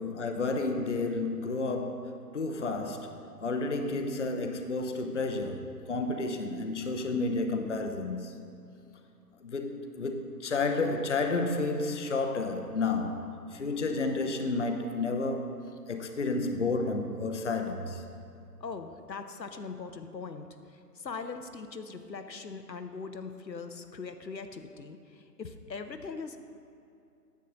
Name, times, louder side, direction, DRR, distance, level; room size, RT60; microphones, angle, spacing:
voice 1, 0.0-3.1 3.4-8.6 9.4-15.5 15.9-18.0, left 3 dB, 45° left, 5 dB, 0.6 m, -31 dB
voice 2, 18.6-26.4, left 4 dB, 85° left, 8 dB, 0.7 m, -41 dB
9.3 x 7.4 x 3.9 m, 2.6 s
figure-of-eight pair, 150°, 50 cm